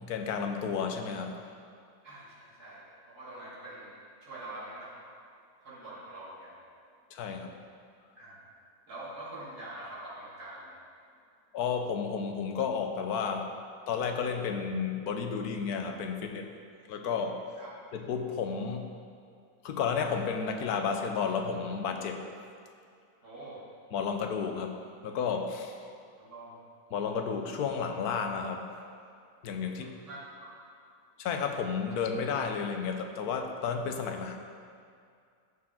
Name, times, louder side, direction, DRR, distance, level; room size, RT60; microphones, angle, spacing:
voice 1, 0.0-1.4 7.1-7.5 11.5-13.5 13.9-16.5 16.9-17.4 17.9-18.9 19.6-22.3 23.9-25.8 26.9-28.7 29.4-29.9 31.2-34.4, left 6 dB, 85° left, 4 dB, 1.3 m, -32 dB
voice 2, 2.0-3.9 4.2-4.9 5.6-6.6 8.2-8.5 8.9-10.8 17.6-17.7 23.2-23.6 26.2-26.6 29.7-30.5, right 1 dB, 90° right, -9 dB, 3.0 m, -45 dB
14.0 x 4.8 x 3.7 m, 2.3 s
omnidirectional pair, 1.6 m